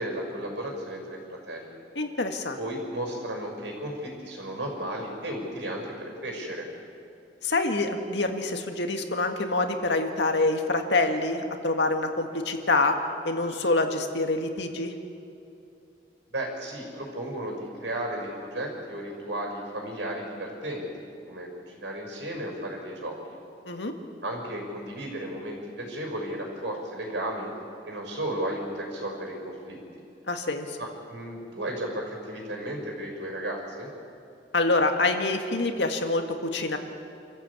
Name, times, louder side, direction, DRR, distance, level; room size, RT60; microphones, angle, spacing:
voice 1, 0.0-1.8 2.6-6.7 16.3-20.9 21.3-23.2 24.2-27.5 27.8-29.8 30.8-33.9, right 1 dB, 85° right, 1 dB, 5.8 m, -34 dB
voice 2, 2.0-2.6 7.4-12.9 13.2-14.9 23.7-23.9 30.3-30.8 34.5-36.8, left 2 dB, 80° left, 5 dB, 1.9 m, -26 dB
27.0 x 14.0 x 8.6 m, 2.7 s
head